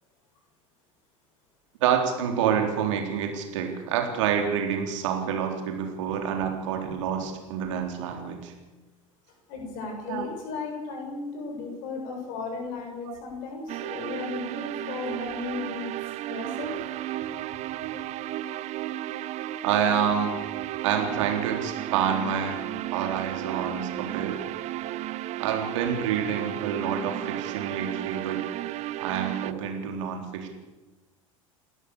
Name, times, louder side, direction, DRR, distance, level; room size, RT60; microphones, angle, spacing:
voice 1, 1.8-8.5 10.1-10.2 13.1-13.2 19.6-20.4 20.8-22.6 22.9-24.4 25.4-28.4 29.0-30.5, right 8 dB, 65° right, 3 dB, 3.8 m, -27 dB
voice 2, 9.5-15.9 16.3-16.7, left 4 dB, 50° left, 2 dB, 7.1 m, -35 dB
sound 1, 13.7-29.5, right 14 dB, 40° right, 0.8 m, -34 dB
29.5 x 13.0 x 6.9 m, 1.2 s
figure-of-eight pair, 75°, 17 cm